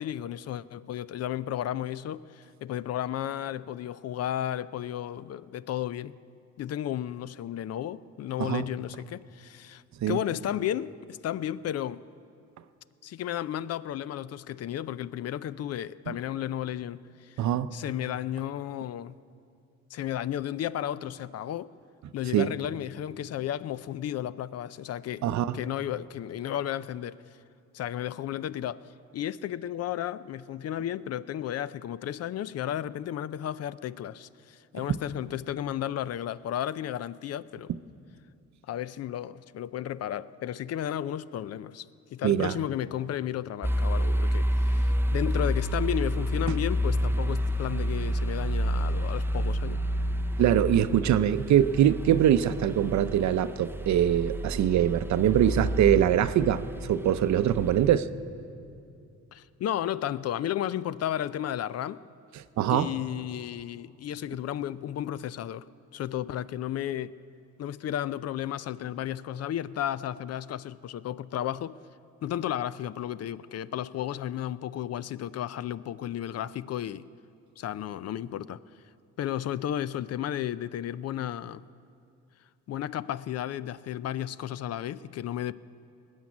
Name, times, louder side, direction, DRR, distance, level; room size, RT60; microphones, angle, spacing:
voice 1, 0.0-6.1 6.6-12.0 13.0-17.4 17.7-19.2 19.9-21.7 22.1-25.3 25.5-27.2 27.7-28.8 29.1-37.7 38.7-49.8 59.3-62.0 62.7-65.7 65.9-67.1 67.6-71.8 72.2-77.0 77.6-78.6 79.2-81.6 82.7-85.5, left 11 dB, 55° left, 0.5 m, -33 dB
voice 2, 17.4-17.7 22.3-22.5 25.2-25.6 42.2-42.6 50.4-58.1 62.6-62.9, right 10 dB, 65° right, 0.6 m, -23 dB
sound 1, 43.6-57.9, equal, 5° right, 0.5 m, -29 dB
19.5 x 7.4 x 9.6 m
cardioid pair, 90°, 30 cm